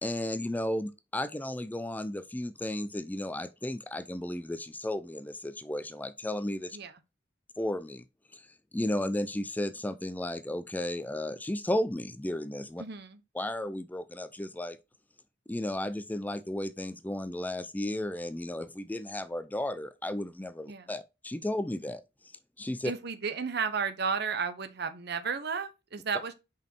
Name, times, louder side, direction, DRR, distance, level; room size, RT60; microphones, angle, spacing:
voice 1, 0.0-6.8 7.6-8.1 8.3-8.5 8.7-12.8 13.3-14.8 15.5-22.0 22.6-22.9, left 1 dB, 10° left, 0.4 m, -34 dB
voice 2, 12.8-13.2 20.7-20.9 22.8-26.3, right 5 dB, 60° right, 1.0 m, -33 dB
5.4 x 5.3 x 4.5 m
head